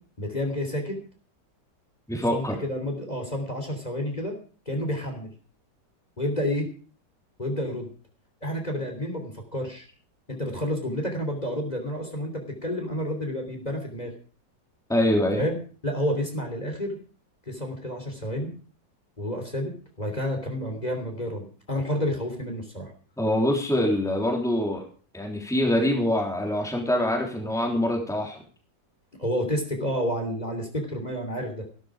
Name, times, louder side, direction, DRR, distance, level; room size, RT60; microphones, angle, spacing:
voice 1, 0.2-1.0 2.3-4.4 4.6-5.3 6.2-6.7 7.4-7.9 8.4-9.9 10.3-14.1 15.3-15.6 15.8-17.0 17.5-18.5 19.2-19.7 20.0-22.9 29.2-31.6, equal, 20° left, 3 dB, 3.5 m, -30 dB
voice 2, 2.1-2.6 14.9-15.4 23.2-24.8 25.1-28.4, left 1 dB, ahead, 1 dB, 3.3 m, -24 dB
15.5 x 13.0 x 5.0 m, 0.39 s
omnidirectional pair, 1.9 m